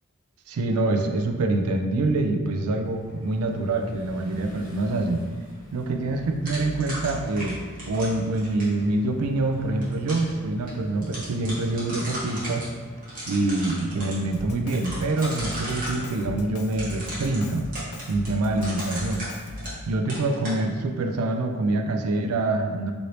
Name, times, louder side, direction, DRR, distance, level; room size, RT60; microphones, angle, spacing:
voice 1, 0.5-5.2 5.7-7.6 7.9-12.6 13.3-17.7 18.1-19.3 19.9-22.9, right 2 dB, 80° right, 5 dB, 0.4 m, -25 dB
sound 1, 2.8-16.4, equal, 40° left, 0.6 m, -45 dB
sound 2, 6.5-8.8 9.6-10.3 10.7-10.8 11.0-12.7 13.0-14.2 14.7-16.0 16.7-19.8 20.1-20.6, right 1 dB, 40° right, 0.9 m, -36 dB
Drum kit, 14.3-19.9, left 2 dB, 80° left, 0.3 m, -39 dB
3.1 x 2.6 x 2.8 m, 1.4 s
head